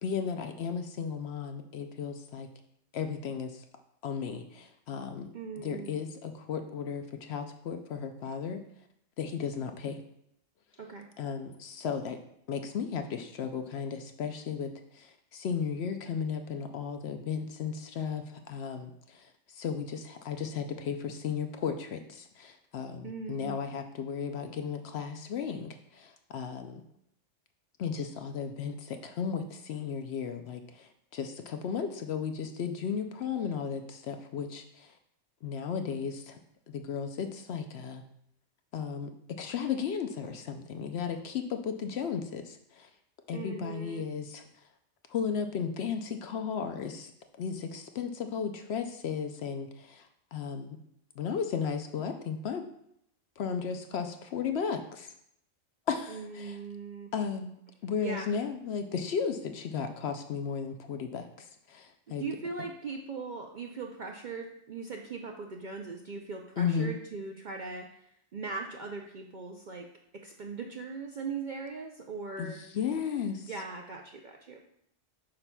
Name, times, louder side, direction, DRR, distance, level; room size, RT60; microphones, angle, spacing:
voice 1, 0.0-2.5 2.9-3.6 4.0-5.3 5.6-8.6 9.2-10.0 11.2-12.2 12.5-26.8 27.8-34.9 35.4-36.4 36.7-38.0 38.7-42.9 43.3-44.4 45.1-47.1 47.4-50.0 50.3-50.8 51.2-52.6 53.4-55.1 55.9-56.6 57.1-57.5 57.8-62.2 66.6-66.9 72.4-73.5, left 6 dB, 65° left, 6 dB, 0.7 m, -35 dB
voice 2, 5.3-5.9 10.8-11.1 23.0-23.6 43.3-44.1 56.1-57.1 58.0-58.3 62.1-67.9 68.3-69.9 70.1-72.6 73.5-74.6, right 4 dB, 60° right, 2 dB, 0.5 m, -39 dB
8.8 x 5.7 x 2.2 m, 0.74 s
omnidirectional pair, 1.3 m